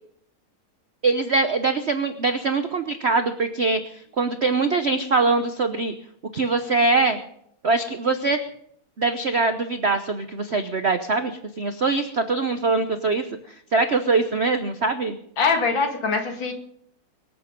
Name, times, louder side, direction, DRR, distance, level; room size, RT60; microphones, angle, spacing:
voice 1, 1.0-5.9 6.3-7.2 7.6-8.4 9.0-13.2 13.7-15.2, right 3 dB, 60° right, 9 dB, 0.7 m, -23 dB
voice 2, 15.4-16.5, left 4 dB, 60° left, 4 dB, 2.7 m, -22 dB
24.0 x 8.4 x 5.2 m, 0.69 s
omnidirectional pair, 2.3 m